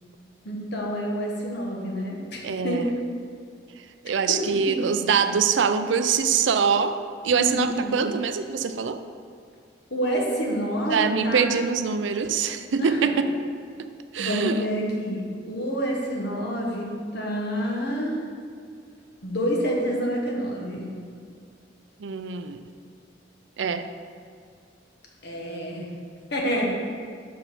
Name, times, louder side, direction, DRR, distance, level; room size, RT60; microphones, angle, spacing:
voice 1, 0.4-2.8 4.3-4.4 4.7-4.8 7.3-8.1 9.9-11.5 12.8-13.2 14.2-18.2 19.2-20.8 25.2-25.8 26.3-26.7, equal, 60° left, -2 dB, 1.4 m, -28 dB
voice 2, 2.4-2.9 4.0-7.0 7.2-9.0 10.9-13.2 14.1-14.7 22.0-22.6 23.6-23.9, right 6 dB, 75° right, 9 dB, 0.4 m, -24 dB
6.0 x 5.0 x 6.1 m, 2.2 s
head